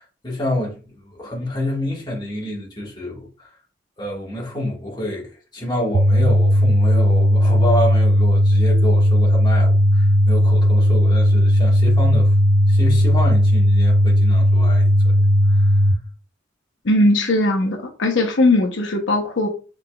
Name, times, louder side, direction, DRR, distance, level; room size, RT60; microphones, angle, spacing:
voice 1, 0.0-3.5 4.0-12.3 12.7-15.1 15.5-15.8, left 1 dB, 25° left, 1.6 m, -28 dB
sound 1, 5.9-15.9, equal, 90° right, 0.5 m, -15 dB
voice 2, 16.8-19.5, left 1 dB, 85° left, 0.8 m, -18 dB
5.7 x 3.6 x 2.3 m
head